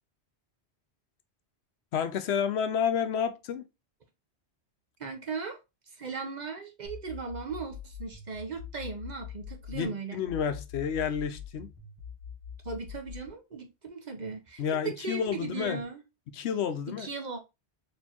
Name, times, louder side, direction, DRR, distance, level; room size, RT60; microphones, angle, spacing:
voice 1, 1.9-3.6 9.7-11.7 14.6-15.8 16.3-17.1, left 7 dB, 75° left, 0.9 m, -30 dB
voice 2, 5.0-5.6 6.0-10.2 12.6-16.0 17.0-17.4, right 4 dB, 45° right, 0.8 m, -37 dB
sound 1, 6.8-9.9 10.3-13.3, left 8 dB, 20° left, 1.4 m, -44 dB
4.3 x 3.1 x 2.8 m
omnidirectional pair, 1.1 m